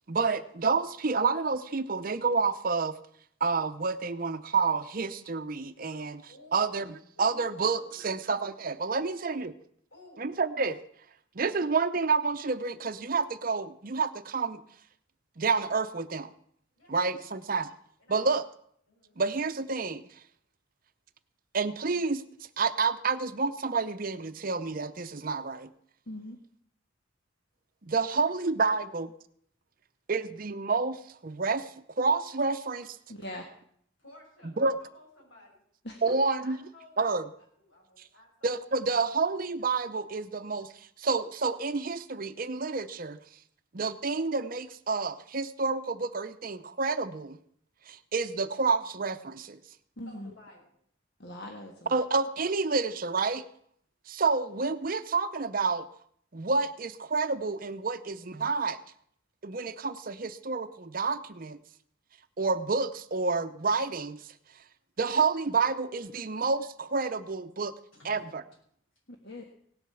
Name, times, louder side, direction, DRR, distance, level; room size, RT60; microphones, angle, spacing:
voice 1, 0.1-3.0 3.4-6.2 6.5-6.8 7.2-9.5 10.2-10.8 11.3-14.6 15.4-16.3 16.9-17.7 18.1-18.4 19.2-20.2 21.5-22.2 22.6-25.7 27.8-29.1 30.1-32.9 34.6-34.8 36.0-36.6 37.0-37.3 38.4-43.2 43.7-47.4 47.9-49.6 51.9-53.4 54.1-55.9 56.3-58.8 59.4-61.6 62.4-64.3 65.0-67.7 68.0-68.4, right 4 dB, 45° right, 11 dB, 0.6 m, -29 dB
voice 2, 5.8-8.1 9.0-9.5 9.9-10.4 16.7-17.4 18.0-18.4 18.9-19.2 27.9-28.8 34.0-35.6 36.4-37.1 37.6-38.8 50.1-50.8 67.9-68.3, left 1 dB, 75° left, -2 dB, 6.9 m, -55 dB
voice 3, 26.1-26.4 33.1-33.4 35.8-36.0 50.0-50.3 51.2-52.0 69.1-69.4, left 1 dB, 55° left, 2 dB, 1.5 m, -41 dB
17.5 x 8.0 x 6.9 m, 0.66 s
head